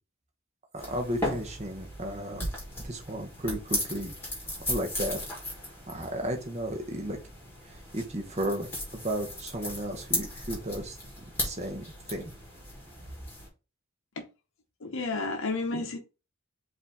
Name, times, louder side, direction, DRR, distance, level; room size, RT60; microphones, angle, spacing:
sound 1, 0.8-13.5, left 1 dB, 10° left, 1.6 m, -37 dB
voice 1, 0.9-2.5 2.8-4.1 4.7-5.2 5.9-7.2 7.9-8.7 9.0-11.0 11.4-12.3, right 1 dB, 30° right, 0.8 m, -33 dB
voice 2, 14.8-16.0, left 3 dB, 65° left, 0.7 m, -31 dB
5.0 x 2.7 x 3.5 m
head